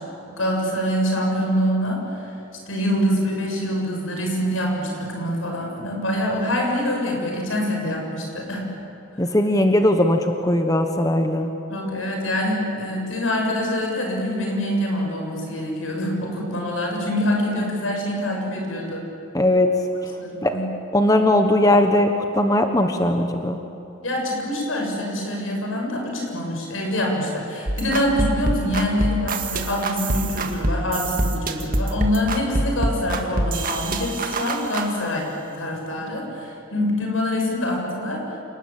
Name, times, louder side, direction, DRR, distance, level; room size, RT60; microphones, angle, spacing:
voice 1, 0.2-2.3 2.7-8.7 11.7-19.0 20.2-20.7 24.0-38.4, left 1 dB, 85° left, 0 dB, 7.0 m, -25 dB
voice 2, 9.2-11.5 19.3-19.7 20.4-20.5 20.9-23.6, left 1 dB, 15° left, 5 dB, 1.2 m, -19 dB
sound 1, 27.7-34.9, right 1 dB, 45° right, 2.0 m, -25 dB
29.0 x 20.0 x 8.9 m, 2.8 s
head